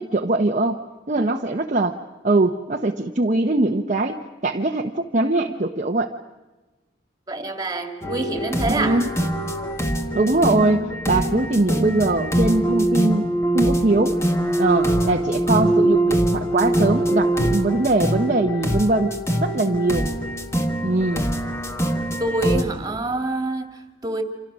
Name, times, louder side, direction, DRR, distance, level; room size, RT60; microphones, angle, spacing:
voice 1, 0.0-2.0 2.2-6.1 8.7-9.1 10.1-14.2 14.6-19.1 19.4-20.1 20.8-21.3, right 2 dB, 35° right, 0.9 m, -21 dB
voice 2, 7.3-9.0 19.7-19.8 22.2-24.2, right 2 dB, 20° right, 2.1 m, -26 dB
sound 1, 8.0-22.6, right 1 dB, 15° left, 1.5 m, -23 dB
28.5 x 26.5 x 6.2 m
head